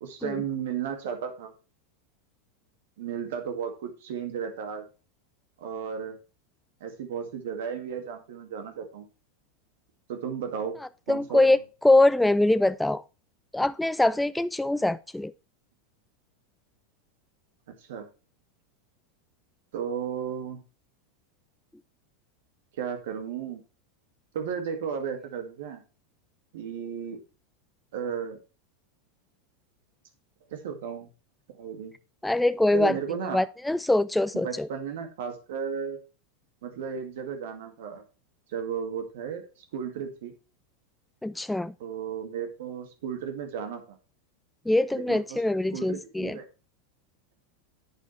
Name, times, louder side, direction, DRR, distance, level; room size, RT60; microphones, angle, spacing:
voice 1, 0.0-1.5 3.0-4.9 5.6-6.2 6.8-9.1 10.1-10.8 11.1-11.6 17.9-18.1 19.7-20.6 22.8-23.6 24.3-25.8 26.5-27.2 27.9-28.4 30.5-31.1 31.5-32.0 32.7-33.4 34.4-36.0 36.6-38.0 38.5-39.5 39.7-40.3 41.8-44.0 44.9-45.4 45.7-46.4, right 7 dB, 70° right, 2.0 m, -34 dB
voice 2, 11.1-13.0 13.5-15.3 32.2-33.0 33.3-34.7 41.2-41.7 44.7-46.4, left 2 dB, 5° left, 0.4 m, -23 dB
10.5 x 7.2 x 3.2 m
hypercardioid pair, 90°, 0 cm